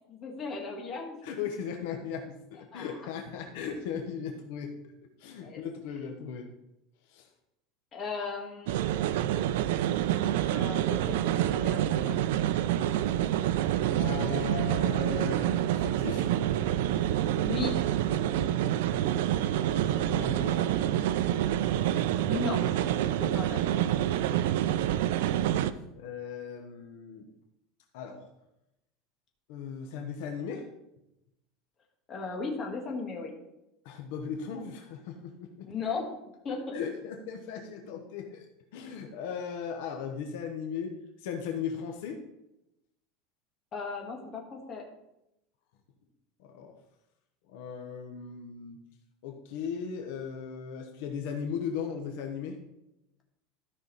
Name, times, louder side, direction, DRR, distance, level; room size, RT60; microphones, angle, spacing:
voice 1, 0.1-1.2 2.7-3.0 5.4-5.6 7.9-8.8 10.2-12.2 17.4-17.7 22.3-22.6 23.2-23.9 32.1-33.3 35.6-36.1 36.4-36.8 43.7-44.8, left 4 dB, 25° left, 0 dB, 1.7 m, -36 dB
voice 2, 1.2-4.7 5.2-6.5 7.1-7.3 12.7-13.2 13.9-15.4 15.7-16.3 19.6-20.6 23.2-23.3 24.1-24.3 24.7-24.9 25.6-27.3 27.9-28.3 29.5-30.7 33.8-35.7 36.7-38.5 38.7-42.2 46.4-46.7 47.5-48.8 49.2-52.6, left 7 dB, 65° left, 3 dB, 1.0 m, -37 dB
sound 1, 8.7-25.7, right 12 dB, 75° right, 0.5 m, -27 dB
13.5 x 5.6 x 4.1 m, 0.88 s
supercardioid pair, 175°, 0 cm